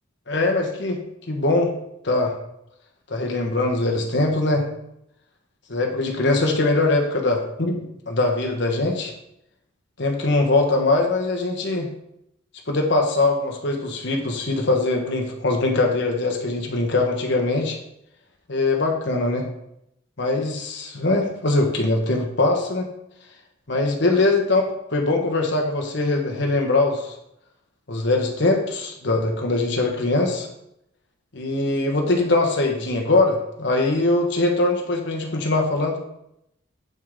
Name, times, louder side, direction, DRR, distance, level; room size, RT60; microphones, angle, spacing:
voice 1, 0.3-1.0 1.3-1.7 2.0-2.3 3.1-4.6 5.7-9.1 10.0-11.9 12.7-17.8 18.5-19.5 20.2-22.9 23.7-24.6 24.9-27.1 27.9-30.5 31.3-36.0, left 2 dB, 60° left, 2 dB, 1.2 m, -22 dB
7.9 x 5.5 x 3.8 m, 0.79 s
head